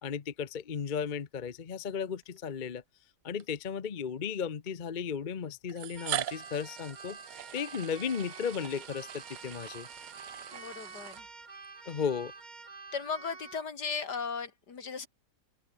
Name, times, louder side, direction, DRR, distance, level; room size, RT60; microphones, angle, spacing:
voice 1, 0.0-2.8 3.2-7.2 7.5-9.9 11.9-12.3, left 7 dB, 35° left, 0.8 m, -35 dB
sound 1, 2.2-2.4 3.4-3.5 4.7-4.8 5.7-11.7, right 13 dB, 85° right, 1.4 m, -41 dB
Keyboard (musical), 5.9-13.7, right 4 dB, 25° right, 1.6 m, -48 dB
sound 2, 8.1-9.3, left 3 dB, 55° left, 4.1 m, -64 dB
voice 2, 10.5-11.3 12.9-15.1, left 5 dB, 75° left, 2.9 m, -36 dB
omnidirectional pair, 1.8 m